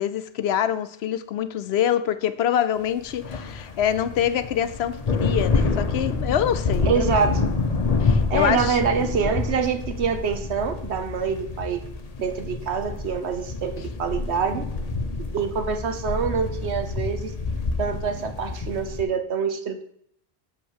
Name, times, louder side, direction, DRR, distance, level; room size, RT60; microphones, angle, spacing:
voice 1, 0.0-7.2 8.0-8.8, left 9 dB, 75° left, 0.9 m, -25 dB
sound 1, 3.0-19.0, left 4 dB, 40° left, 0.9 m, -27 dB
voice 2, 6.9-7.5 8.3-11.8 12.2-14.7 15.3-17.3 17.8-19.8, right 6 dB, 85° right, 1.2 m, -25 dB
6.5 x 5.7 x 7.3 m
omnidirectional pair, 1.1 m